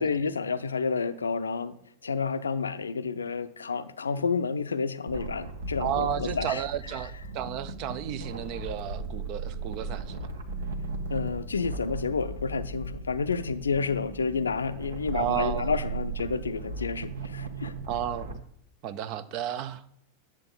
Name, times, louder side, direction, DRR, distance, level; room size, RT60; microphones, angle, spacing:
voice 1, 0.0-1.7 2.0-6.6 11.1-17.7, left 5 dB, 75° left, 0.5 m, -30 dB
sound 1, 5.1-18.3, right 2 dB, 65° right, 1.1 m, -37 dB
voice 2, 5.8-10.3 15.1-15.7 17.9-18.4 18.8-19.8, right 10 dB, 40° right, 0.6 m, -32 dB
10.5 x 7.6 x 3.8 m
figure-of-eight pair, 90°, 0 cm